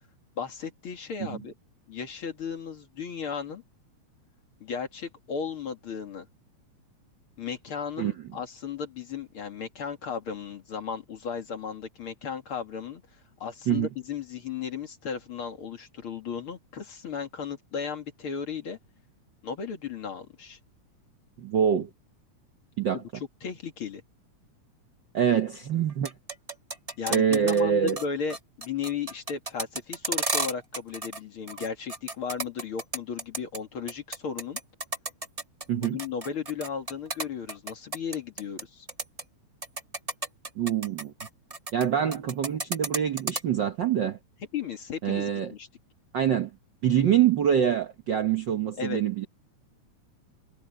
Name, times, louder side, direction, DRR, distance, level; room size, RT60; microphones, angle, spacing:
voice 1, 0.4-1.5 1.9-3.6 4.6-6.3 7.4-13.0 13.4-18.8 19.4-20.6 22.9-23.0 23.4-24.0 27.0-34.6 35.8-38.9 44.5-45.7 48.8-49.0, left 6 dB, 50° left, 2.6 m, -35 dB
voice 2, 21.4-21.9 22.8-23.0 25.1-26.1 27.1-28.0 35.7-36.0 40.5-41.1 41.7-44.2 45.0-45.5 46.1-46.5 46.8-49.3, right 9 dB, 55° right, 1.3 m, -25 dB
sound 1, 25.9-27.6 27.9-28.0 28.3-31.2 31.5-33.6 33.9-38.6 38.9-39.2 39.6-41.9 42.1-43.4, right 2 dB, 30° right, 0.6 m, -32 dB
omnidirectional pair, 3.3 m